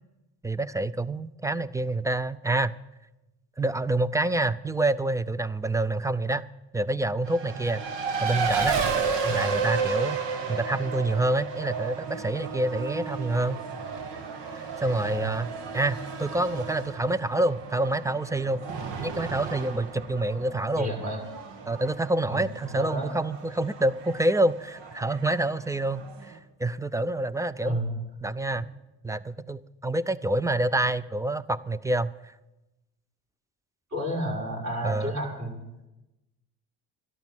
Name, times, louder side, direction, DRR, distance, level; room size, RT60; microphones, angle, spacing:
voice 1, 0.4-2.7 3.6-6.5 6.7-7.8 8.2-8.8 9.3-10.2 10.5-13.6 14.5-18.7 19.0-20.9 21.7-27.8 28.2-28.7 29.0-32.3 34.8-35.1, right 2 dB, 10° right, 17 dB, 0.4 m, -27 dB
Race car auto racing, 7.2-26.4, right 5 dB, 70° right, 1.8 m, -33 dB
voice 2, 15.0-15.3 20.8-21.2 22.3-22.4 22.7-23.1 27.6-28.0 28.5-28.6 33.9-35.6, equal, 40° right, 0 dB, 6.2 m, -31 dB
12.5 x 12.0 x 7.3 m, 1.0 s
supercardioid pair, 80°, 44 cm